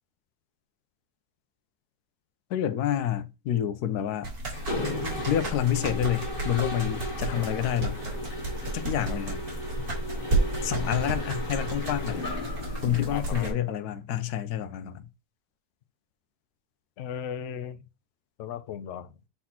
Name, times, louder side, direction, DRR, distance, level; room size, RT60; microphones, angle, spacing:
voice 1, 2.5-4.3 5.3-8.0 8.7-9.4 10.6-12.3 12.8-15.1, left 11 dB, 85° left, 1.2 m, -28 dB
sound 1, 4.2-13.5, right 2 dB, 75° right, 2.7 m, -32 dB
Mechanisms, 4.5-13.5, left 1 dB, 35° left, 1.6 m, -36 dB
voice 2, 13.1-13.6 17.0-17.8 18.4-19.1, left 8 dB, 65° left, 0.8 m, -37 dB
8.4 x 4.0 x 2.9 m
omnidirectional pair, 1.6 m